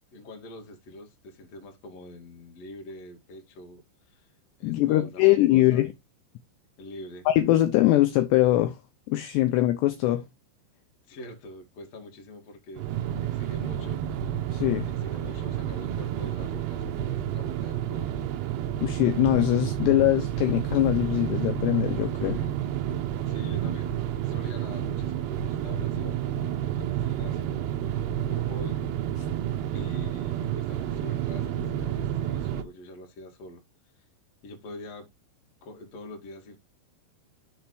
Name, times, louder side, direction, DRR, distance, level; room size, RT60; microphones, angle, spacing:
voice 1, 0.1-4.3 4.6-5.8 6.8-7.3 11.1-12.9 13.2-14.0 14.9-18.3 22.2-22.6 23.3-27.7 28.3-28.8 29.7-33.6 34.4-35.1 35.6-36.6, left 1 dB, 55° left, 1.9 m, -44 dB
voice 2, 4.6-5.9 7.3-8.8 9.1-10.2 14.5-14.9 18.7-22.4, left 15 dB, 80° left, 2.6 m, -22 dB
sound 1, 12.8-32.6, right 11 dB, 80° right, 2.4 m, -30 dB
7.0 x 3.2 x 6.1 m
omnidirectional pair, 5.5 m